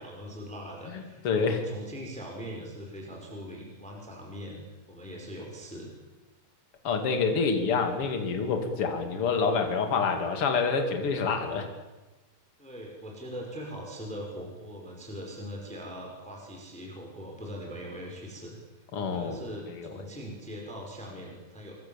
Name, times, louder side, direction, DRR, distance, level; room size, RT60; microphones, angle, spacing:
voice 1, 0.0-4.6 4.9-5.9 12.6-18.6 19.1-21.7, equal, ahead, 0 dB, 5.1 m, -41 dB
voice 2, 0.9-1.6 6.8-11.7 18.9-19.4 19.7-19.9, left 5 dB, 35° left, 5 dB, 2.9 m, -27 dB
27.0 x 24.0 x 7.3 m, 1.1 s
omnidirectional pair, 5.2 m